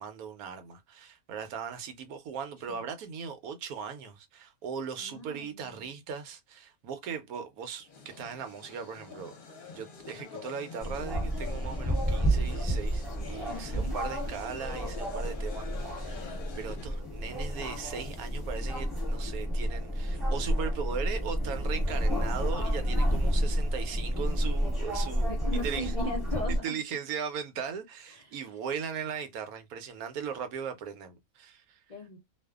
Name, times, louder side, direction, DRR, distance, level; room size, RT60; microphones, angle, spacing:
voice 1, 0.0-7.9 8.2-9.3 9.7-25.9 26.6-31.8, right 7 dB, 85° right, 1.1 m, -38 dB
voice 2, 5.0-5.9 13.5-14.0 25.2-26.8 28.1-28.4 31.9-32.2, left 1 dB, 60° left, 0.4 m, -38 dB
sound 1, 7.8-17.0, left 5 dB, 45° left, 0.8 m, -46 dB
sound 2, 10.8-26.6, equal, ahead, 1.0 m, -30 dB
2.5 x 2.3 x 2.3 m
omnidirectional pair, 1.5 m